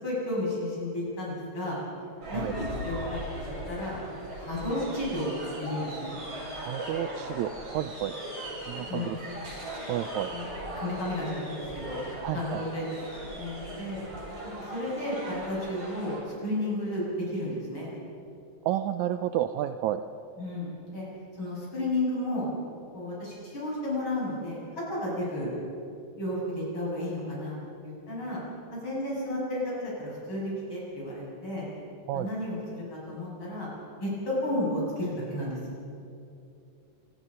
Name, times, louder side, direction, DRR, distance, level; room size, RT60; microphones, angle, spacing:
voice 1, 0.0-1.8 2.3-4.0 4.3-5.3 5.6-6.2 8.7-9.2 10.1-10.5 10.7-12.0 12.3-14.0 14.4-16.1 16.4-17.0 17.3-17.9 20.4-21.0 21.4-22.5 22.9-24.6 24.9-25.5 26.2-27.6 27.8-28.4 28.7-31.7 32.1-33.7 34.0-35.6, left 1 dB, 35° left, -5 dB, 8.4 m, -33 dB
sound 1, 2.2-16.2, right 1 dB, 45° right, 6.9 m, -38 dB
voice 2, 6.5-8.1 8.7-9.2 9.9-10.3 12.2-12.6 18.7-20.0 32.1-32.3, right 12 dB, 75° right, 10 dB, 1.8 m, -31 dB
27.0 x 20.0 x 5.6 m, 2.6 s
omnidirectional pair, 3.7 m